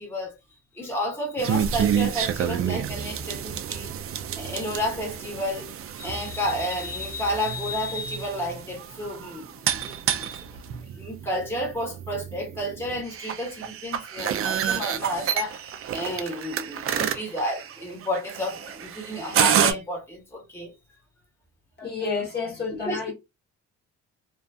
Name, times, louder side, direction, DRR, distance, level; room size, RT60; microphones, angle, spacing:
voice 1, 0.0-3.9 4.4-5.7 6.0-10.3 10.9-20.7 22.8-23.1, equal, 10° left, 1.1 m, -31 dB
sound 1, 1.4-19.7, right 9 dB, 50° right, 0.4 m, -29 dB
voice 2, 21.8-23.1, left 4 dB, 35° left, 1.1 m, -30 dB
2.5 x 2.5 x 2.3 m
cardioid pair, 90°, 30 cm